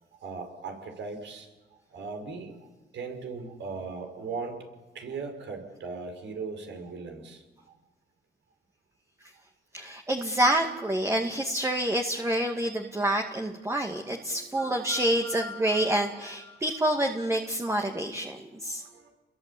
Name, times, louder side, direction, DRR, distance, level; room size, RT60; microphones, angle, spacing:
voice 1, 0.2-1.5 1.9-2.6 2.9-4.6 4.9-7.4 12.2-12.3 13.8-16.6 18.8-19.1, right 4 dB, 70° right, 5 dB, 5.8 m, -39 dB
voice 2, 9.7-18.8, right 1 dB, 15° right, 3 dB, 2.3 m, -27 dB
29.0 x 22.0 x 8.7 m, 1.1 s
cardioid pair, 90°, 20 cm